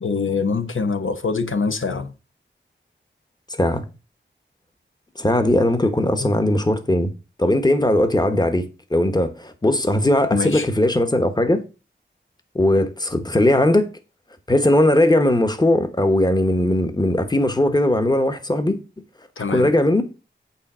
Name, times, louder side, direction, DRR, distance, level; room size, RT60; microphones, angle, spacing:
voice 1, 0.0-2.1 6.2-6.3 10.3-10.7 19.4-19.7, left 4 dB, 80° left, 0.9 m, -24 dB
voice 2, 3.5-3.8 5.2-7.1 7.4-11.6 12.5-13.9 14.5-18.8 19.4-20.2, left 1 dB, 20° left, 1.1 m, -19 dB
8.6 x 4.0 x 6.1 m
wide cardioid pair, 75°, 20 cm